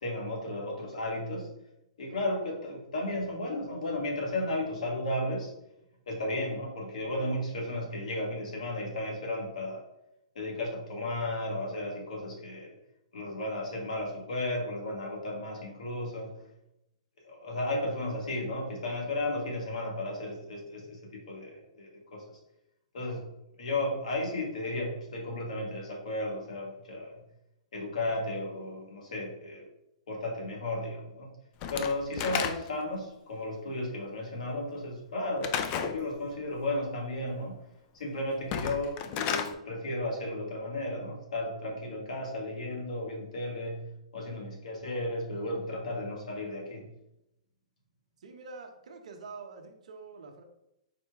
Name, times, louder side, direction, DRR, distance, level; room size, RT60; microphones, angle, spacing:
voice 1, 0.0-1.5 2.0-5.5 6.1-9.8 10.3-12.7 13.1-16.3 17.2-22.2 22.9-23.2 23.6-27.2 27.7-29.6 30.1-31.3 31.7-37.6 37.9-43.8 44.1-46.8, left 1 dB, 75° left, -1 dB, 1.5 m, -34 dB
Slam / Wood, 31.6-32.9 35.4-36.0 38.4-39.5, left 8 dB, 30° left, 0.3 m, -32 dB
voice 2, 48.2-50.4, right 4 dB, 70° right, 5 dB, 0.7 m, -46 dB
4.1 x 2.3 x 4.6 m, 0.86 s
hypercardioid pair, 150°, 4 cm